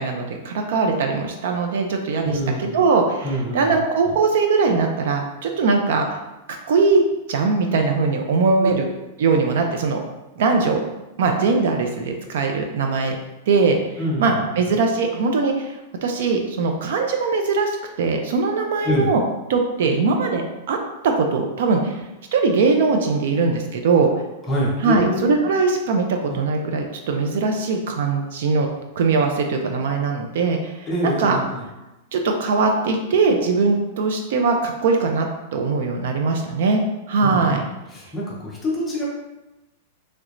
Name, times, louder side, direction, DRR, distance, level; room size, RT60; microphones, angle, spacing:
voice 1, 0.0-3.3 3.5-6.1 6.7-7.0 7.3-8.9 9.2-10.0 10.4-10.8 11.2-13.2 13.5-13.8 14.2-19.2 19.5-20.8 21.0-22.0 22.3-24.1 24.8-28.7 29.0-31.4 32.1-36.8 37.1-37.6, right 4 dB, 55° right, 3 dB, 0.4 m, -21 dB
voice 2, 2.2-2.8 3.2-3.8 4.0-4.1 8.6-8.7 14.0-14.7 18.8-19.1 24.5-25.4 26.3-26.4 30.9-31.6 37.2-39.0, equal, 10° left, -6 dB, 0.7 m, -26 dB
3.1 x 3.0 x 2.5 m, 1.0 s
supercardioid pair, 180°, 0 cm